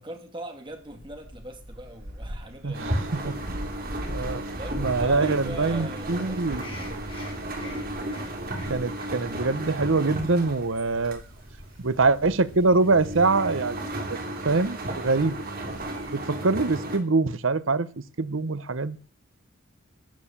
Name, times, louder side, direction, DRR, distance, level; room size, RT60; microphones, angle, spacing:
voice 1, 0.0-3.0 4.5-6.6, right 1 dB, 25° right, 2.5 m, -40 dB
Gull seagull, 0.7-16.1, equal, 90° right, 3.8 m, -43 dB
voice 2, 2.6-3.6 4.1-6.7 8.7-11.2 11.8-13.8 14.1-14.2 14.4-15.3 16.1-17.9 18.2-19.0, right 3 dB, 65° right, 0.8 m, -24 dB
sound 1, 2.7-17.0, right 1 dB, 45° right, 3.1 m, -34 dB
sound 2, 6.0-13.3, left 2 dB, 25° left, 3.5 m, -49 dB
14.0 x 8.8 x 7.3 m
head